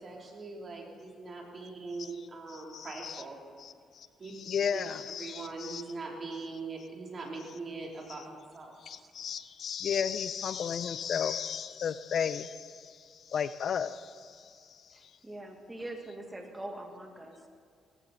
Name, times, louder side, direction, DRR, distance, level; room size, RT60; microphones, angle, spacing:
voice 1, 0.0-3.4 4.2-4.3 4.7-4.8 5.2-9.1, right 3 dB, 40° right, -1 dB, 3.4 m, -41 dB
voice 2, 2.5-3.2 3.6-4.1 4.3-5.8 8.8-15.0, left 7 dB, 60° left, 14 dB, 0.5 m, -34 dB
voice 3, 14.9-17.5, right 1 dB, 15° right, 3 dB, 1.9 m, -43 dB
18.0 x 15.0 x 4.2 m, 2.1 s
cardioid pair, 90°, 0 cm